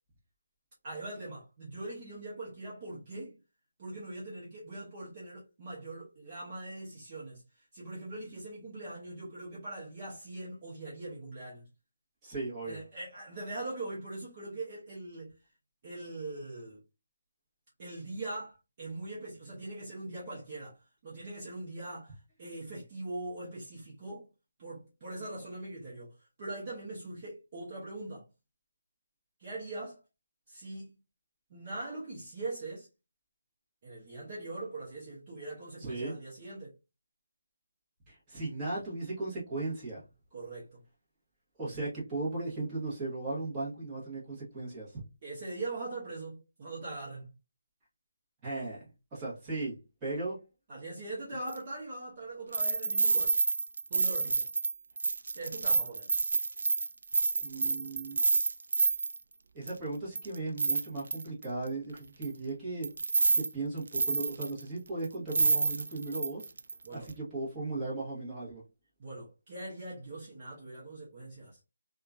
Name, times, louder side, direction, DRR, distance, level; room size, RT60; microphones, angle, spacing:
voice 1, 0.8-3.4 3.8-7.4 7.7-11.7 12.6-15.3 15.8-16.8 17.8-24.3 24.6-28.3 29.4-30.0 30.5-30.9 31.5-32.9 33.8-36.7 40.3-40.8 45.2-47.3 50.7-53.4 53.9-54.5 55.3-56.1 66.8-67.1 69.0-71.6, right 2 dB, 30° right, 0.9 m, -41 dB
voice 2, 12.2-12.8 35.9-36.1 38.1-40.0 41.6-45.0 48.4-49.7 50.0-50.4 57.4-58.2 59.5-62.9 63.3-66.5 66.9-68.6, right 2 dB, 15° right, 1.2 m, -37 dB
sound 1, 51.5-51.6 52.5-59.2 59.7-59.8 60.1-61.4 62.2-62.3 62.8-63.5 63.8-64.6 65.0-65.1 65.3-66.7 67.1-67.2, right 3 dB, 65° right, 0.3 m, -28 dB
2.8 x 2.4 x 2.4 m
hypercardioid pair, 170°, 0 cm